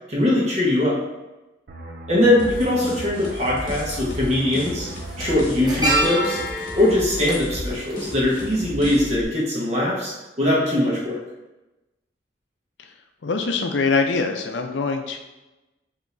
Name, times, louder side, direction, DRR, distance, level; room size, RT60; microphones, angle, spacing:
voice 1, 0.1-1.0 2.1-4.9 5.2-6.4 6.7-10.1 10.4-11.1, left 1 dB, 35° right, -5 dB, 1.2 m, -21 dB
sound 1, 1.7-7.1 7.4-7.6, right 1 dB, 55° right, 0.5 m, -40 dB
sound 2, 2.4-9.2, left 1 dB, 50° left, 1.0 m, -35 dB
sound 3, 2.7-2.8 4.0-4.3 4.5-8.8 9.1-9.3, right 1 dB, 20° right, 0.7 m, -27 dB
voice 2, 13.2-15.2, left 4 dB, 75° left, 5 dB, 0.5 m, -23 dB
5.1 x 2.9 x 2.6 m, 1.0 s
head